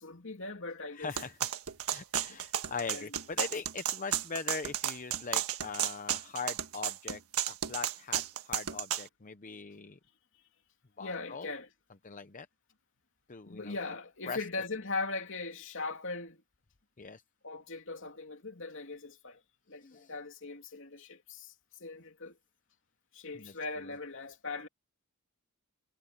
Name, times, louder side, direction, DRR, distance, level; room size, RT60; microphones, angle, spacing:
voice 1, 0.0-1.1 2.3-2.4 2.9-3.2 11.0-11.7 13.4-16.4 17.4-19.4 19.7-21.5 21.8-22.4 23.1-24.7, left 3 dB, 60° left, 3.1 m, -40 dB
voice 2, 0.9-1.3 1.9-7.2 7.5-10.0 11.0-11.5 12.0-12.5 13.3-13.7 14.3-14.4 17.0-17.2 19.8-20.1 23.3-23.5, left 5 dB, 35° left, 0.7 m, -41 dB
sound 1, 1.2-9.1, right 10 dB, 80° right, 1.5 m, -33 dB
head